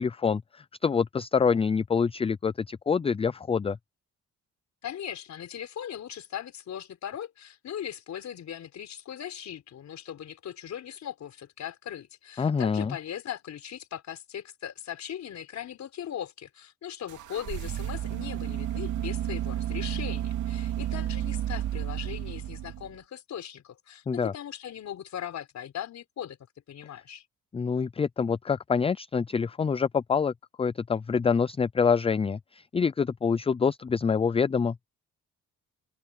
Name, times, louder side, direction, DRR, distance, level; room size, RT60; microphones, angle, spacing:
voice 1, 0.0-3.8 12.4-12.9 24.1-24.3 27.5-34.8, left 6 dB, 20° left, 0.4 m, -26 dB
voice 2, 4.8-26.4 26.7-27.2, left 10 dB, 65° left, 4.5 m, -39 dB
sound 1, 17.1-23.0, right 12 dB, 80° right, 2.3 m, -32 dB
open air
cardioid pair, 90°, 30 cm